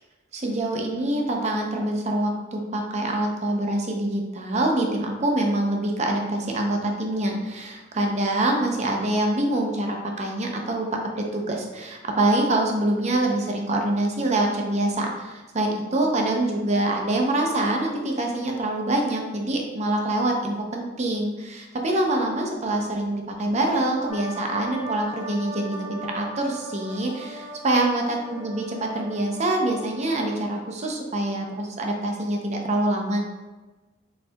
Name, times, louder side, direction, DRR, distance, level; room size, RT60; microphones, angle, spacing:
voice 1, 0.3-10.9 11.3-33.2, right 1 dB, 35° right, 1 dB, 0.6 m, -25 dB
sound 1, 24.1-30.5, right 2 dB, 65° left, 1.3 m, -39 dB
4.4 x 3.9 x 2.3 m, 1.2 s
head